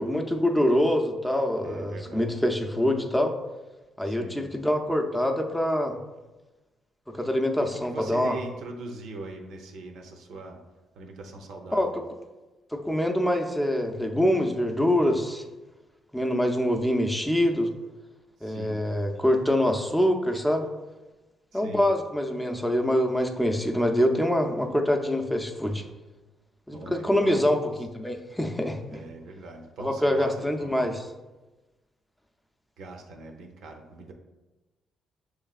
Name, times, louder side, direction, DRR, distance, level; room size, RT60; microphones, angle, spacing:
voice 1, 0.0-3.3 4.0-6.0 7.1-8.4 11.7-11.9 12.7-15.4 16.1-17.7 18.4-20.7 21.5-25.8 26.7-29.0 29.8-31.0, left 1 dB, 5° left, 4 dB, 0.5 m, -25 dB
voice 2, 1.6-2.4 4.0-4.4 7.6-10.6 10.9-12.0 18.4-18.8 21.5-21.9 26.7-27.7 28.9-30.8 32.8-34.1, right 2 dB, 80° right, 3 dB, 0.6 m, -41 dB
6.5 x 3.2 x 2.4 m, 1.1 s
cardioid pair, 90°, 0 cm